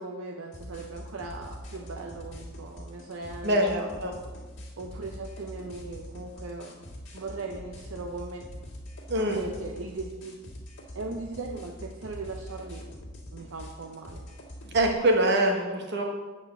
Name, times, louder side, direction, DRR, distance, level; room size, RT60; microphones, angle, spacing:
voice 1, 0.0-3.9 4.8-6.9 7.1-8.5 9.2-10.4 10.9-12.8 13.3-14.2, right 3 dB, 75° right, 2 dB, 0.7 m, -39 dB
sound 1, 0.5-14.9, equal, 60° left, 2.0 m, -43 dB
voice 2, 3.4-4.1 9.1-9.4 14.7-16.1, right 1 dB, 55° right, 2 dB, 1.2 m, -24 dB
8.1 x 4.4 x 6.9 m, 1.3 s
head